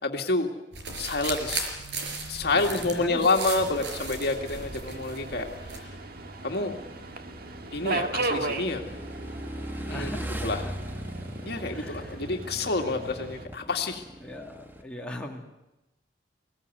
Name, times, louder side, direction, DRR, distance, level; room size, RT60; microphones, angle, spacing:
voice 1, 0.0-0.5 1.0-1.7 2.3-5.5 6.4-6.8 7.7-8.9 9.9-10.1 10.4-10.6 11.4-14.0, left 3 dB, 65° left, 3 dB, 2.1 m, -28 dB
sound 1, 0.7-5.8, right 3 dB, 80° right, 4.7 m, -36 dB
voice 2, 2.5-3.3 9.9-10.7 11.6-12.2 12.9-13.2 14.2-15.5, left 1 dB, 5° left, -1 dB, 2.4 m, -40 dB
Subway metro underground, 3.6-13.5, right 2 dB, 60° right, 1.6 m, -37 dB
Motorcycle / Engine, 5.1-14.8, equal, 10° right, 1.5 m, -40 dB
22.5 x 17.5 x 9.4 m, 0.99 s
head